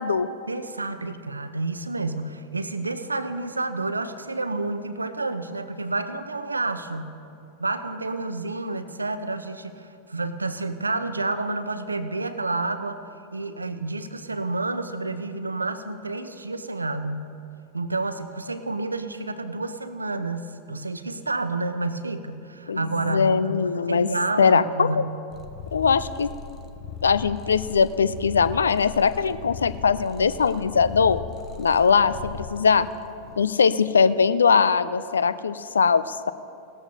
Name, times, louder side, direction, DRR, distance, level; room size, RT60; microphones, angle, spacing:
voice 1, 0.5-7.2 7.6-13.0 13.3-17.3 17.7-23.3 23.9-25.1, right 2 dB, 80° right, 11 dB, 0.6 m, -29 dB
voice 2, 22.7-24.1 24.4-25.0 25.7-26.3 27.0-31.2 31.6-32.9 33.4-36.3, left 5 dB, 70° left, 15 dB, 0.4 m, -21 dB
Purr, 25.3-33.4, left 6 dB, 30° left, 1.1 m, -38 dB
18.0 x 13.5 x 2.8 m, 2.6 s
figure-of-eight pair, 90°, 0 cm